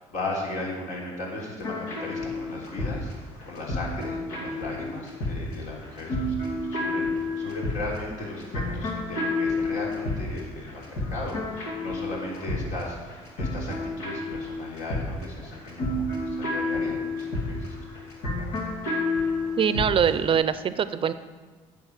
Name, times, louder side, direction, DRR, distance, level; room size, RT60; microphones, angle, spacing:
voice 1, 0.0-17.9, left 2 dB, 70° left, -3 dB, 3.6 m, -36 dB
sound 1, 1.6-20.2, left 2 dB, 85° left, 2.5 m, -30 dB
voice 2, 19.6-21.1, right 7 dB, 40° right, 13 dB, 0.6 m, -23 dB
9.3 x 6.9 x 6.7 m, 1.3 s
supercardioid pair, 80°, 13 cm